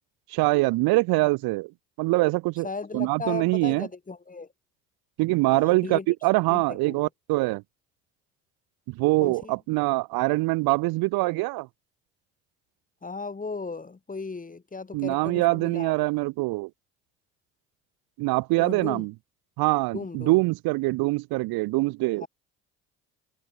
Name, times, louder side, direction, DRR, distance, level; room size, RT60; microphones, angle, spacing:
voice 1, 0.3-1.7 2.0-2.7 2.9-3.9 5.2-7.6 8.9-11.7 14.9-16.7 18.2-19.1 19.6-22.3, right 22 dB, 65° right, 1.1 m, -24 dB
voice 2, 2.6-4.5 5.4-6.1 6.5-7.1 9.2-9.5 13.0-15.9 18.6-19.1 19.9-20.4 22.2-22.3, left 4 dB, 20° left, 1.9 m, -36 dB
hypercardioid pair, 55°, 39 cm